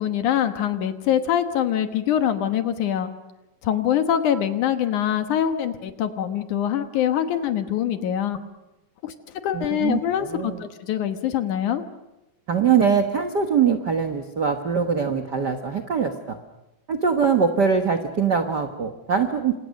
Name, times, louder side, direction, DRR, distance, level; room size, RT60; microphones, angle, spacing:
voice 1, 0.0-3.1 3.6-8.4 9.0-9.1 9.4-11.8, left 10 dB, 65° left, 8 dB, 2.5 m, -24 dB
voice 2, 9.5-10.6 12.5-16.4 16.9-19.5, right 6 dB, 85° right, 6 dB, 0.9 m, -22 dB
29.0 x 27.0 x 6.6 m, 0.96 s
omnidirectional pair, 4.2 m